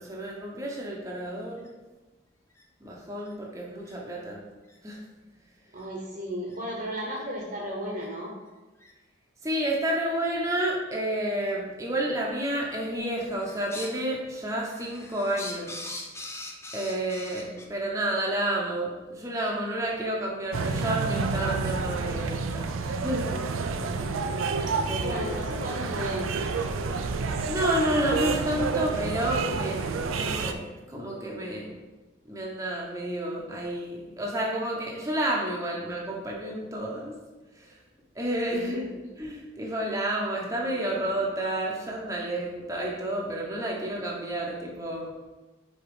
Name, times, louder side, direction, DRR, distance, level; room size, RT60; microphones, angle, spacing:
voice 1, 0.0-1.7 2.8-4.4 4.8-5.0 9.4-15.9 16.7-23.3 24.9-25.4 27.5-31.8 32.3-37.1 37.6-37.8 38.1-38.8 39.2-45.1, right 1 dB, 15° right, -3 dB, 0.8 m, -30 dB
sound 1, 1.6-1.7 2.5-2.6 3.3-3.4 3.8-3.9 4.6-4.8 5.8-5.9 6.4-6.6 7.1-7.2 8.0-8.1 8.8-8.9 9.6-9.7 10.4-10.5 11.4-11.5 12.4-12.8 13.1-14.0 14.4-17.7, left 2 dB, 15° left, 0.5 m, -42 dB
voice 2, 5.7-8.3 23.9-24.3 25.0-26.8 38.5-39.0, equal, 45° right, -3 dB, 1.0 m, -35 dB
sound 2, 20.5-30.5, right 4 dB, 85° right, 0.5 m, -29 dB
5.1 x 4.3 x 4.8 m, 1.2 s
head